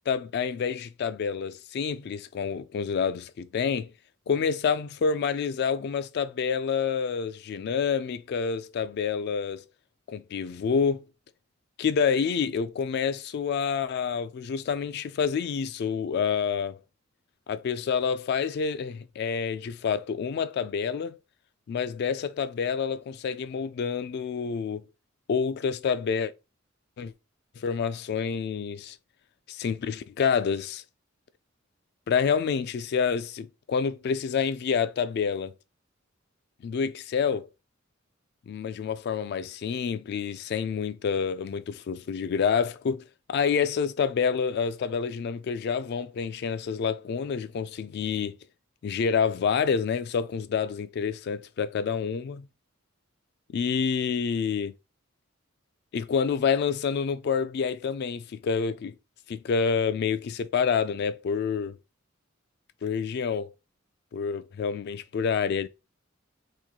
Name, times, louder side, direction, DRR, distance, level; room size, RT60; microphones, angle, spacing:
voice 1, 0.1-3.9 4.3-9.6 10.1-11.0 11.8-16.8 17.5-21.2 21.7-24.8 25.3-26.3 27.0-27.1 27.6-29.0 29.5-30.8 32.1-35.5 36.6-37.5 38.5-43.0 43.3-48.4 48.8-52.5 53.5-54.7 55.9-58.9 59.3-61.8 62.8-63.5 64.1-65.7, left 6 dB, 55° left, 0.3 m, -28 dB
3.6 x 3.0 x 2.3 m
head